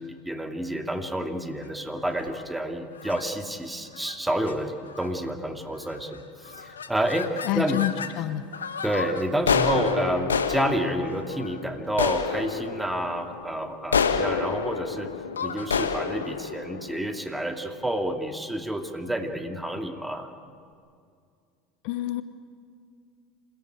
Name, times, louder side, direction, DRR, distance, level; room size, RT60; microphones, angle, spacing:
voice 1, 0.0-7.8 8.8-15.1 15.4-20.3, right 1 dB, 5° right, 5 dB, 2.5 m, -29 dB
sound 1, 2.1-2.4 3.0-3.2 3.9-4.2 4.4-4.5 4.9-5.3 5.8-6.2 6.4-8.1 8.5-17.7, left 6 dB, 90° left, 1.2 m, -29 dB
voice 2, 7.4-8.4 21.8-22.2, left 15 dB, 60° left, 12 dB, 1.0 m, -27 dB
27.5 x 17.5 x 8.2 m, 2.2 s
hypercardioid pair, 75°, 0 cm